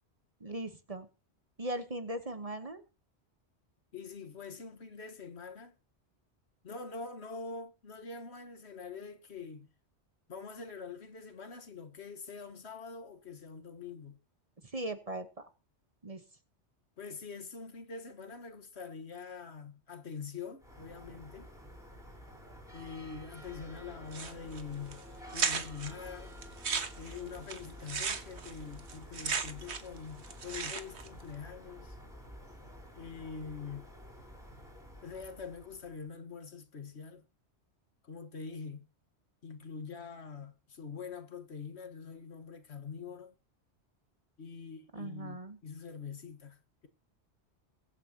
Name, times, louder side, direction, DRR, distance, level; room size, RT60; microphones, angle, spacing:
voice 1, 0.4-1.1 1.6-2.8 14.7-15.5 16.0-16.2 44.9-45.6, right 1 dB, 35° right, 1.2 m, -39 dB
voice 2, 3.9-5.8 6.6-9.7 10.3-14.2 17.0-21.5 22.7-25.0 25.3-26.3 27.0-32.0 32.9-33.9 35.0-37.2 38.0-38.8 39.4-43.3 44.4-46.6, left 5 dB, 70° left, 1.7 m, -44 dB
sound 1, 20.6-36.1, equal, 5° right, 4.3 m, -50 dB
sound 2, 24.1-24.6 24.9-25.0 25.3-25.9 26.4-30.0 30.2-31.1, right 5 dB, 70° right, 1.5 m, -35 dB
22.5 x 8.9 x 2.9 m
omnidirectional pair, 1.2 m